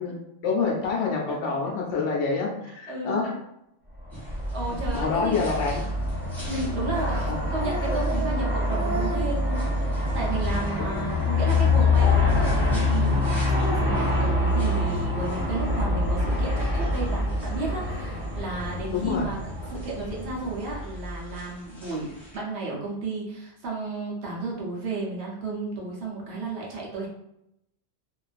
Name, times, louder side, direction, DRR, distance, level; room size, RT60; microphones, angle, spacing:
voice 1, 0.0-3.3 4.9-5.8 7.3-7.4 10.8-11.1 18.9-19.3, left 4 dB, 75° left, -2 dB, 0.9 m, -27 dB
voice 2, 1.3-1.7 2.7-3.2 4.5-5.4 5.7-5.9 6.5-19.4 19.7-27.1, right 3 dB, 65° right, -3 dB, 0.9 m, -33 dB
Aircraft, 4.0-21.3, left 2 dB, 30° left, 0.8 m, -25 dB
sound 1, 4.1-22.4, right 1 dB, ahead, 0.8 m, -40 dB
2.4 x 2.3 x 2.4 m, 0.82 s
omnidirectional pair, 1.3 m